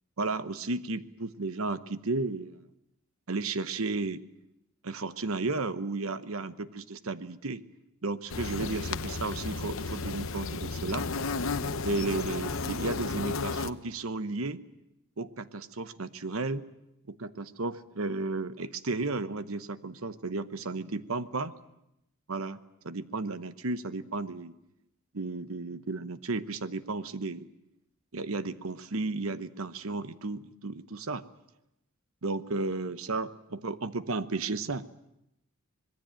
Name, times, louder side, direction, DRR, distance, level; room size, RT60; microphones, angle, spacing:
voice 1, 0.2-2.6 3.3-4.2 4.8-7.6 8.0-11.1 11.8-14.6 15.2-16.6 17.1-21.5 22.3-22.6 22.8-24.6 25.1-27.5 28.1-31.2 32.2-34.9, right 3 dB, 75° right, 13 dB, 1.1 m, -33 dB
sound 1, 8.3-13.7, left 4 dB, 65° left, 0.9 m, -33 dB
25.5 x 20.0 x 9.0 m, 0.85 s
head